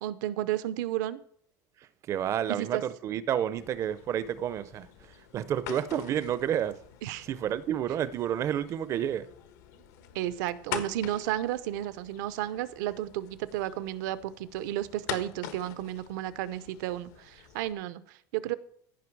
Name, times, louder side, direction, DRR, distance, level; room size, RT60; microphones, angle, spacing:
voice 1, 0.0-1.2 2.5-2.8 7.0-7.3 10.1-18.6, right 13 dB, 80° right, 0.7 m, -33 dB
voice 2, 1.8-6.8 7.2-9.3, right 10 dB, 30° right, 0.5 m, -30 dB
sound 1, 3.5-17.7, left 10 dB, 75° left, 1.2 m, -45 dB
15.0 x 5.6 x 4.6 m
cardioid pair, 165°, 10 cm